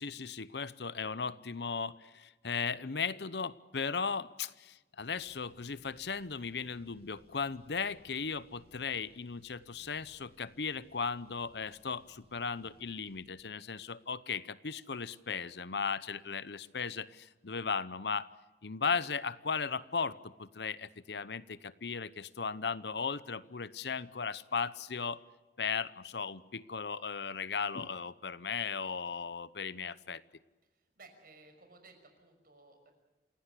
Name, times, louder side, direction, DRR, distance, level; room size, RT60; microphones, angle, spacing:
voice 1, 0.0-18.3 18.6-25.2 25.6-30.2, left 5 dB, 70° left, 17 dB, 0.8 m, -36 dB
Car, 5.0-13.2, equal, 35° right, 7.8 m, -66 dB
voice 2, 30.7-32.9, right 3 dB, 55° right, 6 dB, 6.0 m, -58 dB
28.0 x 17.5 x 8.3 m, 1.2 s
head